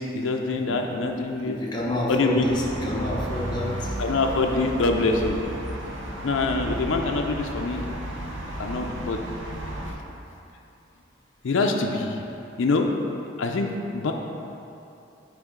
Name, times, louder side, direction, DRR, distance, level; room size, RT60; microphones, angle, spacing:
voice 1, 0.0-1.6 2.1-2.5 4.0-5.4 6.2-7.8 8.6-9.2 9.8-10.0 11.4-12.2 12.6-12.9 13.4-14.1, left 3 dB, 75° left, 2 dB, 0.4 m, -25 dB
voice 2, 1.4-4.0, left 1 dB, 20° left, -4 dB, 0.7 m, -29 dB
sound 1, 2.4-9.9, right 1 dB, 70° right, 0.7 m, -33 dB
8.1 x 3.4 x 3.7 m, 2.8 s
head